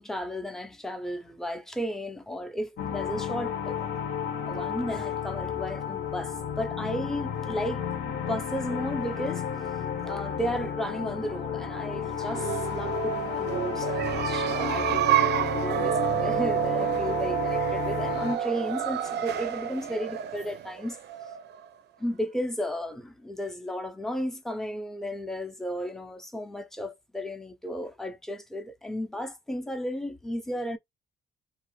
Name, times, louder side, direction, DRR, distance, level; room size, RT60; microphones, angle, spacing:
voice 1, 0.0-3.9 4.5-7.8 8.3-9.4 10.0-21.0 22.0-30.8, equal, ahead, 0.6 m, -34 dB
sound 1, 2.8-18.4, left 8 dB, 65° left, 1.1 m, -32 dB
sound 2, 12.1-21.7, right 11 dB, 60° right, 0.4 m, -29 dB
2.7 x 2.0 x 3.1 m
cardioid pair, 90°, 20 cm